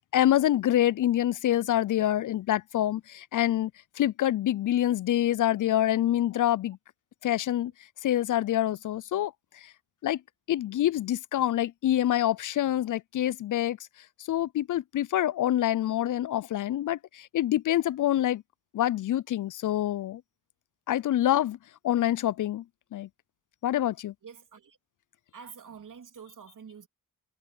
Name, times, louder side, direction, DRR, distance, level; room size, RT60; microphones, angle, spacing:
voice 1, 0.1-3.7 4.0-6.8 7.2-7.7 8.0-9.7 10.0-10.2 10.5-13.8 14.3-18.4 18.7-20.2 20.9-21.6 21.8-22.6 22.9-23.1 23.6-24.1, left 12 dB, 60° left, 0.5 m, -26 dB
voice 2, 24.2-24.8 25.3-26.9, right 6 dB, 65° right, 3.2 m, -47 dB
supercardioid pair, 45°, 34 cm